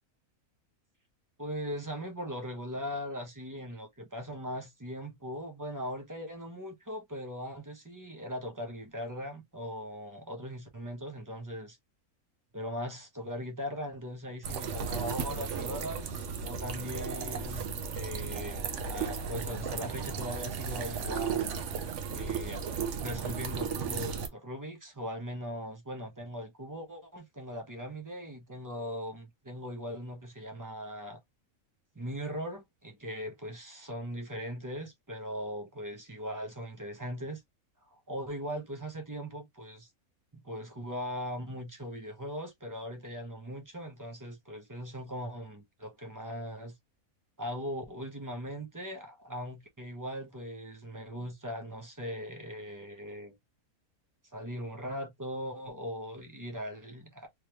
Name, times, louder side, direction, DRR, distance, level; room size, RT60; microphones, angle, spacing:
voice 1, 1.4-11.8 12.5-21.5 22.1-22.6 23.0-31.2 31.9-37.4 37.9-39.9 40.3-46.8 47.4-53.3 54.3-57.3, equal, 15° right, 0.7 m, -39 dB
sound 1, 14.4-24.3, right 6 dB, 60° right, 1.0 m, -35 dB
3.3 x 3.2 x 3.0 m
omnidirectional pair, 1.5 m